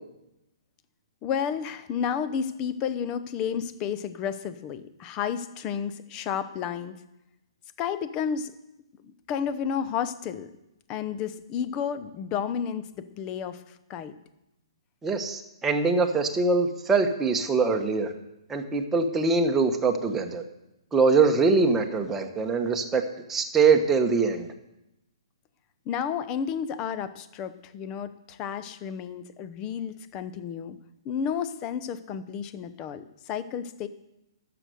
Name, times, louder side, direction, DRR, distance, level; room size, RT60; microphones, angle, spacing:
voice 1, 1.2-7.0 7.8-8.5 9.3-10.5 10.9-14.1 25.9-30.8 31.0-33.9, left 7 dB, 25° left, 13 dB, 0.8 m, -31 dB
voice 2, 15.0-18.1 18.5-20.4 20.9-23.0 23.3-24.5, right 4 dB, 10° right, 4 dB, 1.2 m, -23 dB
12.0 x 6.9 x 7.9 m, 0.90 s
hypercardioid pair, 145°, 3 cm